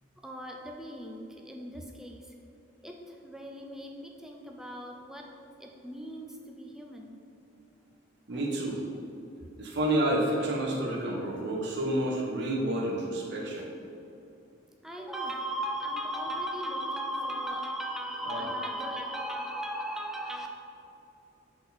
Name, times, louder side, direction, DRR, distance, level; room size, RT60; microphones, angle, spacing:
voice 1, 0.0-2.3 2.8-7.2 8.3-8.5 14.8-20.6, right 1 dB, ahead, 1 dB, 0.5 m, -37 dB
voice 2, 8.3-8.8 9.6-13.7 18.3-18.4, right 1 dB, 60° right, -2 dB, 1.2 m, -29 dB
8.0 x 4.2 x 4.1 m, 2.8 s
head